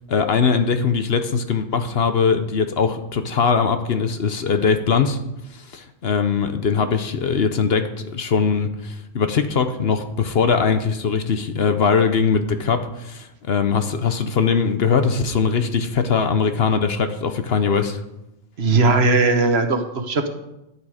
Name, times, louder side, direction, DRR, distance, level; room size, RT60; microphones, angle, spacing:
voice 1, 0.1-5.2 5.5-18.0, left 5 dB, 55° left, 8 dB, 1.0 m, -21 dB
voice 2, 18.6-20.3, right 3 dB, 55° right, 7 dB, 1.3 m, -18 dB
12.5 x 8.7 x 4.9 m, 0.90 s
omnidirectional pair, 1.3 m